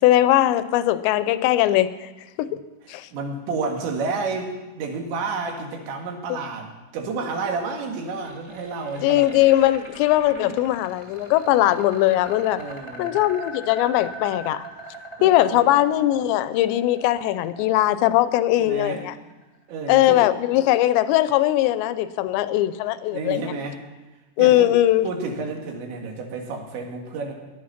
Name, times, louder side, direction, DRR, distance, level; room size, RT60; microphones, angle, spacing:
voice 1, 0.0-2.1 2.4-2.6 2.9-3.1 9.0-12.6 13.0-14.7 15.2-19.1 19.9-23.4 24.4-25.1, left 14 dB, 85° left, 14 dB, 2.8 m, -20 dB
voice 2, 3.1-9.3 10.3-10.8 12.6-13.2 15.2-15.8 18.6-19.1 19.7-20.2 20.6-20.7 22.2-22.3 23.1-23.8 24.4-24.7 25.0-27.3, right 4 dB, 90° right, 2 dB, 4.2 m, -30 dB
sound 1, 8.0-19.9, right 1 dB, 20° right, 0.7 m, -41 dB
17.0 x 11.0 x 5.9 m, 1.1 s
omnidirectional pair, 5.1 m